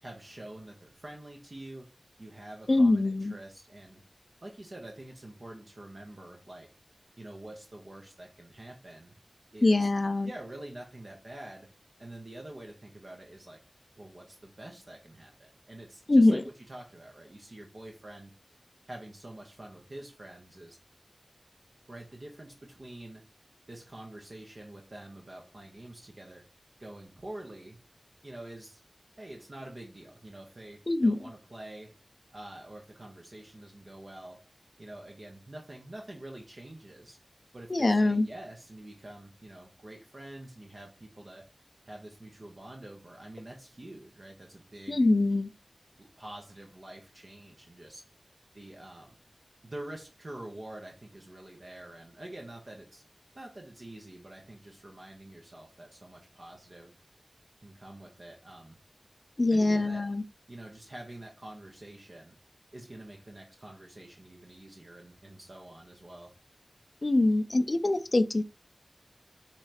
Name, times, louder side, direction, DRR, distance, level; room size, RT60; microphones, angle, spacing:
voice 1, 0.0-4.0 4.4-6.7 7.2-9.2 9.5-9.9 10.2-11.7 12.0-13.7 14.0-18.3 18.9-20.8 21.9-23.2 23.7-26.5 26.8-27.8 28.2-28.8 29.2-31.9 32.3-34.5 34.8-37.2 37.5-41.5 41.8-45.1 46.0-48.0 48.5-49.2 49.6-53.0 53.3-56.9 57.6-58.8 59.5-60.1 60.5-62.4 62.7-66.4, right 1 dB, 55° right, 0.9 m, -46 dB
voice 2, 2.7-3.3 9.6-10.3 16.1-16.4 30.9-31.2 37.7-38.3 44.9-45.5 59.4-60.2 67.0-68.4, left 2 dB, 50° left, 0.4 m, -23 dB
5.6 x 3.3 x 2.8 m
wide cardioid pair, 60°, 0 cm